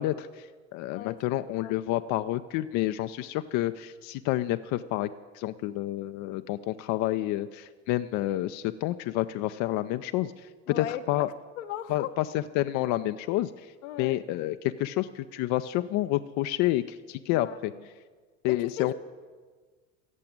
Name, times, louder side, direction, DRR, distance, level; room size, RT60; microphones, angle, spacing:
voice 1, 0.0-10.5 10.8-11.3 11.9-13.7 14.0-17.7 18.4-18.9, left 15 dB, 50° left, 10 dB, 0.5 m, -29 dB
voice 2, 10.7-11.2 11.6-12.1 13.8-14.2 17.3-17.6 18.5-18.9, left 12 dB, 70° left, 8 dB, 1.0 m, -37 dB
15.0 x 7.7 x 8.7 m, 1.5 s
hypercardioid pair, 70°, 38 cm